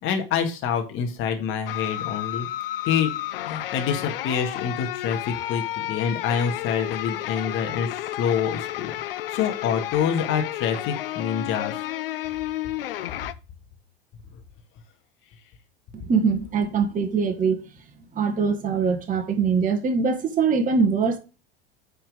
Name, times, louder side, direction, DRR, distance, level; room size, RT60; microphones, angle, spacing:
voice 1, 0.0-2.5 2.8-3.1 3.5-8.9 9.3-11.8, left 7 dB, 45° left, 2.0 m, -26 dB
sound 1, 1.7-13.3, left 13 dB, 70° left, 0.7 m, -31 dB
voice 2, 15.9-17.6 18.1-21.2, right 5 dB, 25° right, 1.5 m, -22 dB
9.1 x 4.6 x 4.9 m
figure-of-eight pair, 85°, 30 cm